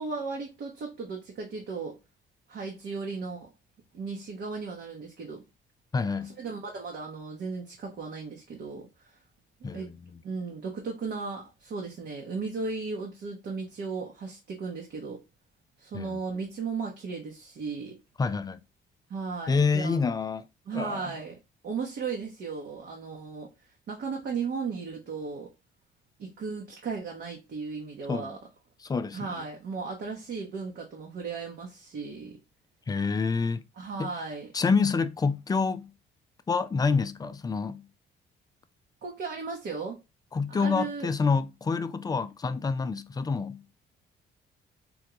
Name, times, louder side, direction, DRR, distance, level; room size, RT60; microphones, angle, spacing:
voice 1, 0.0-2.0 2.5-3.5 3.9-5.4 6.2-9.2 9.6-9.9 10.2-15.2 15.8-18.0 19.1-20.0 20.7-21.3 21.6-23.5 23.9-25.5 26.2-28.4 29.1-32.4 33.8-34.5 39.0-40.0 40.5-41.1, right 4 dB, 60° right, 0.8 m, -36 dB
voice 2, 5.9-6.3 9.6-10.0 15.9-16.2 18.2-18.6 19.5-20.5 20.7-21.0 28.1-28.4 28.8-29.3 32.9-33.6 34.0-34.1 34.5-35.9 36.5-37.8 40.3-43.6, left 4 dB, 20° left, 0.3 m, -27 dB
3.7 x 2.2 x 2.9 m
cardioid pair, 90°, 20 cm